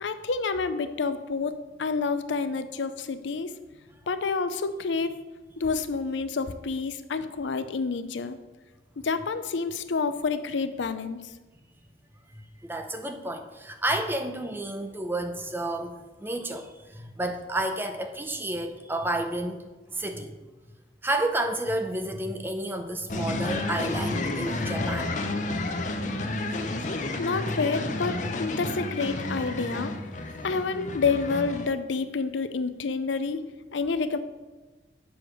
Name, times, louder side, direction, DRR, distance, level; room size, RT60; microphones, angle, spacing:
voice 1, 0.0-3.5 4.1-5.1 5.6-8.4 9.0-11.2 27.2-29.9 30.4-34.2, left 4 dB, 85° left, 11 dB, 0.5 m, -29 dB
voice 2, 12.3-19.6 19.9-20.4 21.0-25.4, right 1 dB, 10° right, 6 dB, 0.6 m, -31 dB
sound 1, 23.1-31.7, left 2 dB, 40° left, 0.7 m, -31 dB
7.0 x 4.8 x 6.1 m, 1.2 s
head